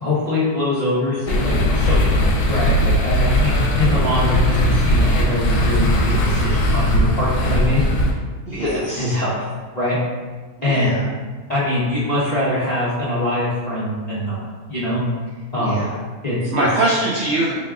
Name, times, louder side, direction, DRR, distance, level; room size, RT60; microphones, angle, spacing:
voice 1, 0.0-7.8 8.5-9.5 9.7-10.0 10.6-11.0 11.5-14.4 14.7-15.0 15.5-15.8 16.2-16.4, left 1 dB, 50° left, -10 dB, 0.4 m, -23 dB
sound 1, 1.3-8.1, equal, 80° left, 1.1 m, -18 dB
voice 2, 8.5-9.2 10.6-11.1 15.6-15.9 16.5-17.5, right 2 dB, 75° right, -4 dB, 0.6 m, -23 dB
3.9 x 2.4 x 3.5 m, 1.4 s
omnidirectional pair, 1.7 m